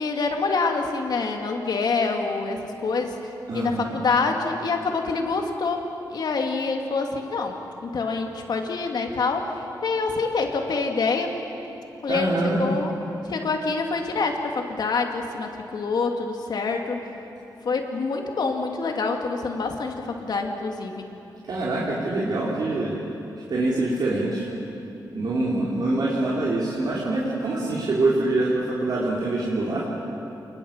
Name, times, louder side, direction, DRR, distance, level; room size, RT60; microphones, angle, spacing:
voice 1, 0.0-5.8 6.1-11.3 12.0-12.9 13.3-17.1 17.6-21.1, left 4 dB, 65° left, 3 dB, 2.5 m, -26 dB
voice 2, 3.5-4.0 12.1-12.7 21.5-22.9 23.5-24.5 25.1-29.9, right 2 dB, 65° right, -5 dB, 3.4 m, -25 dB
27.5 x 20.5 x 7.4 m, 2.9 s
wide cardioid pair, 130°, 8 cm